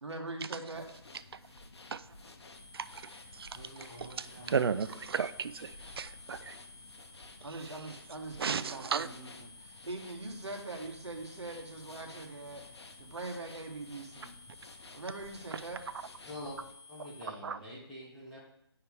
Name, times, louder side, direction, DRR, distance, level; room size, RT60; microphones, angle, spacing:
voice 1, 0.0-0.9 7.4-12.6 13.0-14.3 14.9-15.8, right 2 dB, 80° right, 2 dB, 1.5 m, -42 dB
sound 1, 0.7-16.7, left 3 dB, 70° left, 0.9 m, -54 dB
sound 2, 2.5-17.3, left 3 dB, 30° left, 1.5 m, -55 dB
voice 2, 2.7-3.5 4.0-6.6 8.4-9.1 17.4-17.6, right 6 dB, 60° right, 13 dB, 0.4 m, -34 dB
voice 3, 3.5-4.7 16.3-16.6 16.9-18.4, equal, ahead, -10 dB, 1.6 m, -46 dB
9.5 x 4.6 x 3.4 m, 0.77 s
figure-of-eight pair, 160°, 14 cm